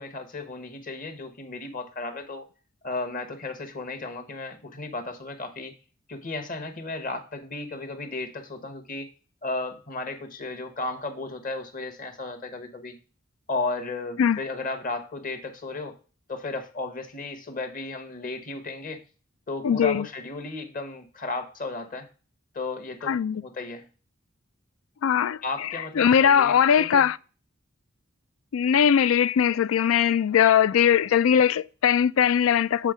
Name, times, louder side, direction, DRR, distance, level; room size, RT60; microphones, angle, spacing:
voice 1, 0.0-2.5 2.8-5.7 6.1-9.1 9.4-13.0 13.5-16.0 16.3-19.0 19.5-22.1 22.5-23.8 25.4-27.1, left 3 dB, 45° left, 1.2 m, -34 dB
voice 2, 19.6-20.0 23.1-23.4 25.0-25.4 26.0-27.2 28.5-32.9, left 8 dB, 85° left, 0.4 m, -20 dB
7.4 x 4.4 x 5.0 m
head